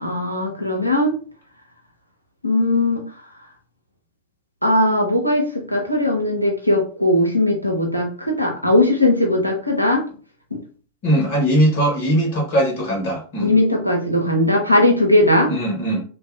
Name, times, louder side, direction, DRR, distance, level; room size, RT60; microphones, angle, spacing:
voice 1, 0.0-1.1 2.4-3.0 4.6-10.0 10.5-10.6 13.4-15.5, left 1 dB, 90° left, 2 dB, 0.7 m, -18 dB
voice 2, 11.0-13.5 15.5-16.0, right 1 dB, 50° left, 0 dB, 1.0 m, -20 dB
2.5 x 2.2 x 3.4 m, 0.39 s
figure-of-eight pair, 90°, 0 cm